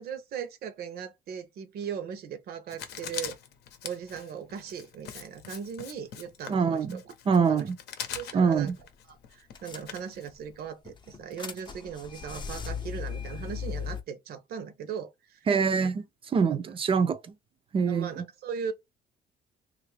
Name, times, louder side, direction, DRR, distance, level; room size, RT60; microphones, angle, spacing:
voice 1, 0.0-3.3 3.8-7.0 7.4-7.7 8.1-8.7 9.1-15.4 16.5-16.7 17.9-18.7, right 7 dB, 65° right, 0.8 m, -38 dB
Writing, 2.7-10.7, left 8 dB, 75° left, 0.7 m, -42 dB
voice 2, 6.5-7.8 8.3-8.8 15.5-16.0 16.3-17.2 17.7-18.1, right 6 dB, 30° right, 0.4 m, -24 dB
sound 1, 8.6-8.8 9.1-9.2 9.6-10.3 10.8-14.0, left 6 dB, 25° left, 0.5 m, -37 dB
3.0 x 2.5 x 3.2 m
cardioid pair, 110°, 17 cm